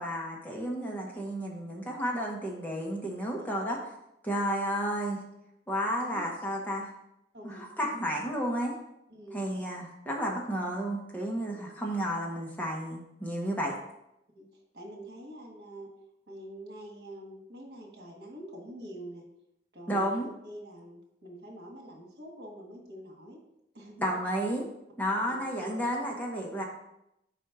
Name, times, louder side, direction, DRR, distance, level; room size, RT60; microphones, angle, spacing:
voice 1, 0.0-3.8 4.2-5.2 5.7-6.9 7.4-8.7 9.3-13.7 19.9-20.3 24.0-24.6 25.0-26.6, equal, 10° left, -2 dB, 1.0 m, -32 dB
voice 2, 7.3-7.7 9.1-9.5 11.5-11.8 14.3-15.9 16.3-19.3 19.7-23.4 23.7-24.0 25.0-25.8, right 1 dB, 65° right, 0 dB, 1.6 m, -46 dB
5.0 x 4.4 x 5.9 m, 0.84 s
head